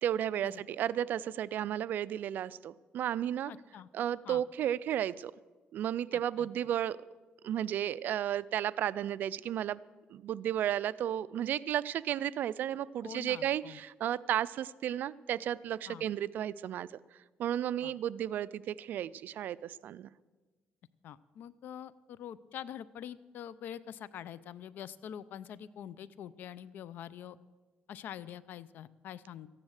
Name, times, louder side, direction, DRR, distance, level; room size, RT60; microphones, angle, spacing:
voice 1, 0.0-3.5 3.9-5.3 5.7-7.0 7.4-9.8 10.1-16.9 17.4-20.1, right 11 dB, 65° right, 19 dB, 0.4 m, -33 dB
voice 2, 3.5-3.9 4.2-4.4 6.1-6.5 13.0-13.8 15.9-16.1 17.8-17.9 21.0-27.4 27.9-29.5, left 10 dB, 70° left, 19 dB, 0.5 m, -45 dB
14.0 x 10.5 x 6.4 m, 1.3 s
cardioid pair, 105°, 3 cm